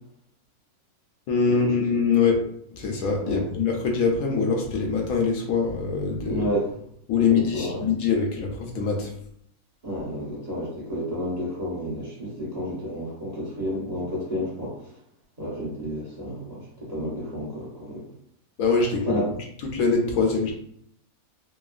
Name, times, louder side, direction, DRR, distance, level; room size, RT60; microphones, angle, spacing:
voice 1, 1.3-2.4 2.7-6.4 7.1-9.1 18.6-19.2 19.7-20.5, left 5 dB, 75° left, 1 dB, 1.0 m, -23 dB
voice 2, 6.2-6.7 7.2-7.8 9.8-14.8 15.4-18.0 19.0-19.2, equal, 30° right, -8 dB, 0.9 m, -31 dB
3.1 x 2.1 x 2.4 m, 0.67 s
omnidirectional pair, 1.6 m